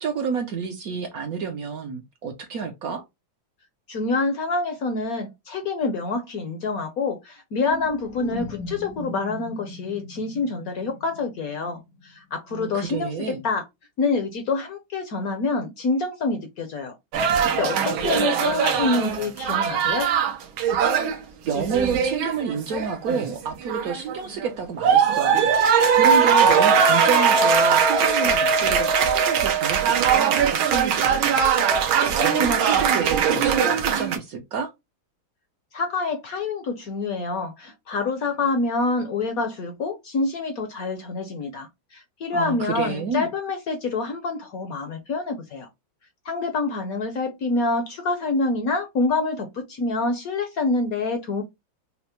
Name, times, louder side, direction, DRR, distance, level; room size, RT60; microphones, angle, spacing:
voice 1, 0.0-3.0 12.5-13.4 21.5-31.4 32.1-34.7 42.3-43.3, right 5 dB, 70° right, 0.9 m, -29 dB
voice 2, 3.9-13.6 14.0-20.1 35.7-45.7 46.2-51.4, left 3 dB, 65° left, 0.9 m, -27 dB
sound 1, 7.6-12.2, left 2 dB, 85° left, 1.7 m, -39 dB
sound 2, 17.1-21.2 21.5-23.3 23.7-24.5 24.8-34.2, right 6 dB, 85° right, 1.7 m, -20 dB
5.6 x 2.1 x 2.8 m
omnidirectional pair, 2.2 m